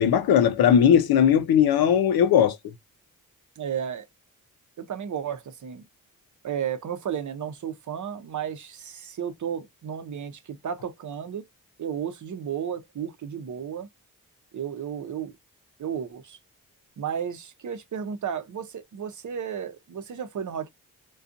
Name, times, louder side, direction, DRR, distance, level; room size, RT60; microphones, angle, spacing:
voice 1, 0.0-2.6, left 8 dB, 90° left, 0.5 m, -18 dB
voice 2, 3.6-4.1 4.8-5.8 6.4-11.5 11.8-13.9 14.5-15.3 15.8-16.4 17.0-20.7, right 8 dB, 55° right, 0.6 m, -33 dB
2.5 x 2.3 x 2.5 m
cardioid pair, 65°, 35 cm